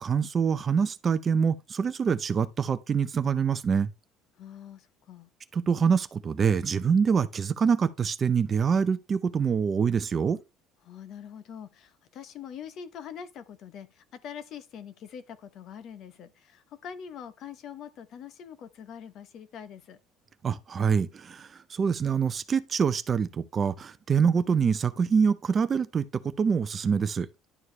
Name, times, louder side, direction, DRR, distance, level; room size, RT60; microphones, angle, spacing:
voice 1, 0.0-3.9 5.5-10.4 20.4-27.3, right 6 dB, 25° right, 0.5 m, -25 dB
voice 2, 4.4-5.3 10.8-20.0, left 8 dB, 45° left, 0.9 m, -44 dB
11.0 x 4.6 x 3.2 m
cardioid pair, 160°, 0 cm